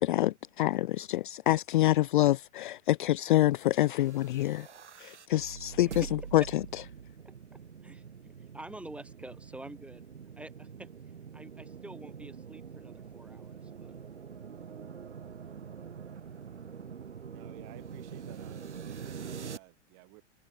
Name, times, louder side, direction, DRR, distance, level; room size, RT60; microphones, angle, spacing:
voice 1, 0.0-4.7 5.0-5.9 6.3-6.4, left 15 dB, 45° left, 0.5 m, -26 dB
sound 1, 3.8-19.6, right 7 dB, 75° right, 5.9 m, -45 dB
voice 2, 5.8-6.1 6.4-6.5 7.2-10.0 10.4-10.9 11.3-14.0, right 1 dB, 5° right, 6.3 m, -47 dB
voice 3, 17.3-20.2, right 38 dB, 40° right, 4.1 m, -54 dB
figure-of-eight pair, 110°, 35 cm